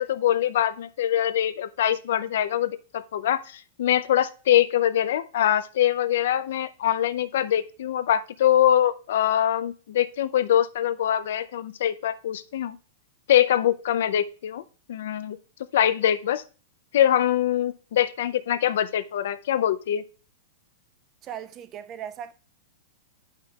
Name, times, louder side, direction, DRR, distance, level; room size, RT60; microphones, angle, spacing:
voice 1, 0.0-12.8 13.3-14.6 14.9-15.4 15.7-16.4 16.9-20.0, left 11 dB, 70° left, 0.5 m, -23 dB
voice 2, 21.2-22.3, right 9 dB, 25° right, 0.3 m, -37 dB
9.5 x 5.6 x 2.3 m
supercardioid pair, 160°, 0 cm